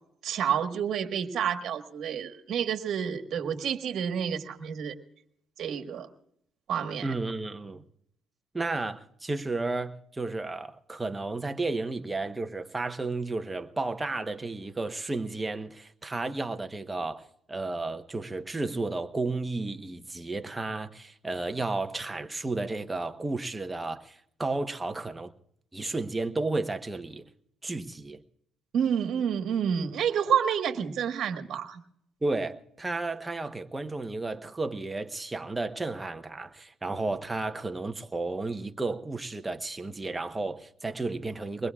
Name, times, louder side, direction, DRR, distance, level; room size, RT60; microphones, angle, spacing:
voice 1, 0.2-4.9 5.6-6.1 6.7-7.1 28.7-31.8, right 8 dB, 65° right, 1.5 m, -29 dB
voice 2, 7.0-7.8 8.5-25.3 25.7-27.2 27.6-28.2 32.2-41.7, right 3 dB, 15° right, 1.0 m, -33 dB
23.5 x 20.5 x 2.4 m
cardioid pair, 100°, 0 cm